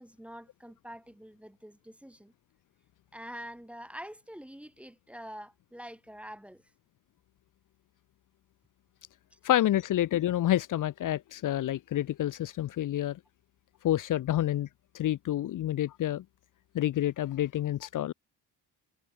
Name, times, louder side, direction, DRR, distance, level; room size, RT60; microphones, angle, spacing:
voice 1, 0.0-2.3 3.1-6.6 9.3-9.4, equal, 5° right, 1.5 m, -46 dB
voice 2, 9.4-13.2 13.8-14.7 14.9-16.2 16.7-18.1, left 12 dB, 50° left, 0.9 m, -28 dB
cardioid pair, 140°, 39 cm